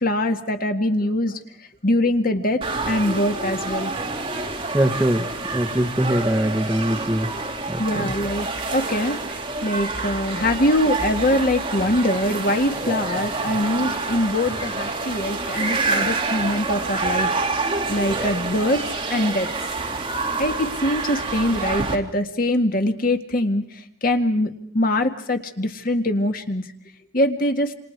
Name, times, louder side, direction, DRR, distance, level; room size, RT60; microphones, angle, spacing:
voice 1, 0.0-1.4 1.8-2.6 2.9-3.9 7.8-9.2 9.6-17.4 17.9-18.8 19.1-19.5 20.4-23.6 24.0-26.6 27.1-27.7, left 1 dB, 50° left, 5 dB, 2.0 m, -23 dB
sound 1, 2.6-22.0, right 3 dB, 30° right, 2.9 m, -27 dB
voice 2, 4.7-5.3 5.5-7.3 7.7-8.1, right 1 dB, 10° right, 2 dB, 1.8 m, -22 dB
28.5 x 28.5 x 4.7 m, 0.62 s
head